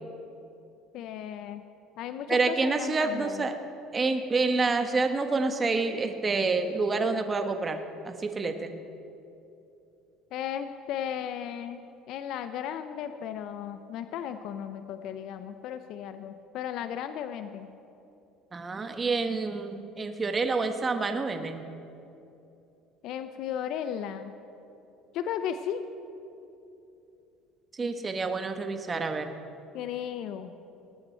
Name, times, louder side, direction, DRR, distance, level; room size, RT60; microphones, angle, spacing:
voice 1, 0.9-1.6 2.0-3.5 10.3-17.7 23.0-24.3 25.1-25.9 29.7-30.5, left 9 dB, 65° left, 10 dB, 0.5 m, -35 dB
voice 2, 2.3-3.5 3.9-8.7 18.5-21.6 27.8-29.3, right 3 dB, 25° right, 7 dB, 1.0 m, -28 dB
19.5 x 8.7 x 4.4 m, 2.8 s
cardioid pair, 120°, 0 cm